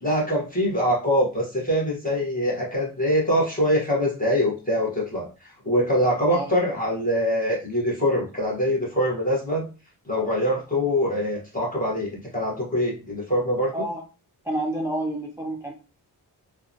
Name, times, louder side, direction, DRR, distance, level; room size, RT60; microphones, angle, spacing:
voice 1, 0.0-9.7 10.1-13.7, equal, 20° left, -4 dB, 0.9 m, -24 dB
voice 2, 14.4-15.7, right 1 dB, 10° right, -1 dB, 0.3 m, -29 dB
2.7 x 2.1 x 2.5 m, 0.32 s
wide cardioid pair, 155°, 41 cm